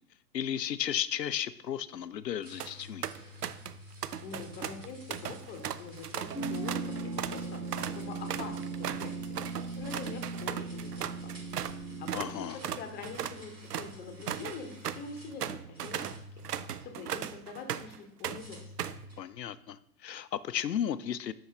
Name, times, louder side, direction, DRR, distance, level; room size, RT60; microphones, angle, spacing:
voice 1, 0.3-3.1 12.1-12.6 19.2-21.3, left 10 dB, 80° left, 16 dB, 0.5 m, -34 dB
sound 1, 2.4-2.7 3.0-3.8 4.0-11.8 12.1-12.3 12.6-18.0 18.2-19.1, right 10 dB, 70° right, 0.6 m, -37 dB
sound 2, 2.4-15.4 15.7-17.2 18.3-19.3, left 1 dB, 90° right, 2.8 m, -50 dB
voice 2, 4.2-9.4 9.8-11.3 11.6-12.3 12.7-16.1 16.3-16.4 16.8-18.7, left 4 dB, 20° left, 5 dB, 1.0 m, -44 dB
sound 3, 6.3-12.5, right 3 dB, 10° right, 0.9 m, -38 dB
7.2 x 5.5 x 3.5 m, 0.78 s
figure-of-eight pair, 105°, 49 cm